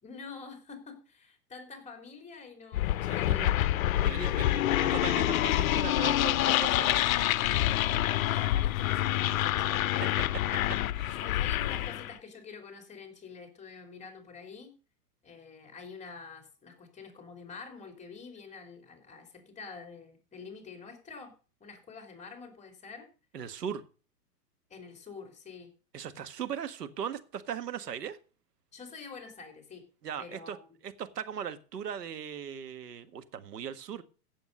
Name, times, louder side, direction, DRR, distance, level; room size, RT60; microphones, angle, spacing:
voice 1, 0.0-3.5 7.6-9.9 11.2-14.7 15.2-21.3 21.6-23.1 24.7-25.7 28.7-29.8 30.2-30.6, left 5 dB, 15° left, 3.4 m, -47 dB
sound 1, 2.7-12.1, left 13 dB, 60° left, 0.7 m, -27 dB
voice 2, 3.0-3.5 4.0-7.0 10.3-10.4 10.9-11.2 23.3-23.8 25.9-28.2 30.0-30.6 30.8-34.0, right 8 dB, 75° right, 1.7 m, -38 dB
16.0 x 7.8 x 5.4 m
hypercardioid pair, 120°, 48 cm